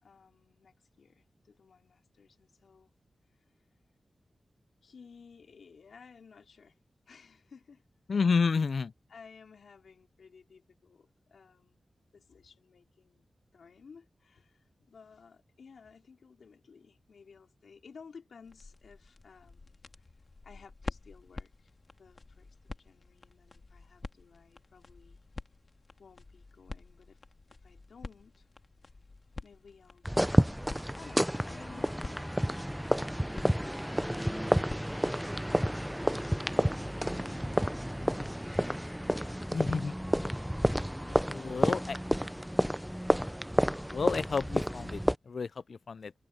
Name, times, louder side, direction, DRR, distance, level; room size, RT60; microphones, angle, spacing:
voice 1, 0.0-2.9 3.3-3.4 4.8-6.8 7.1-7.8 8.2-8.3 9.1-11.9 12.1-13.3 13.5-19.8 20.4-21.7 22.0-25.2 26.0-27.2 27.6-28.5 29.4-30.6 30.9-32.9 34.9-35.6 36.9-39.6, left 5 dB, 85° left, 4.0 m, -56 dB
voice 2, 8.1-8.9 39.5-39.9 41.3-42.0 43.9-46.1, left 5 dB, 60° left, 0.3 m, -30 dB
sound 1, 18.4-36.0, left 3 dB, 40° left, 2.0 m, -48 dB
sound 2, 30.0-45.2, equal, ahead, 0.4 m, -30 dB
wide cardioid pair, 145°, 0 cm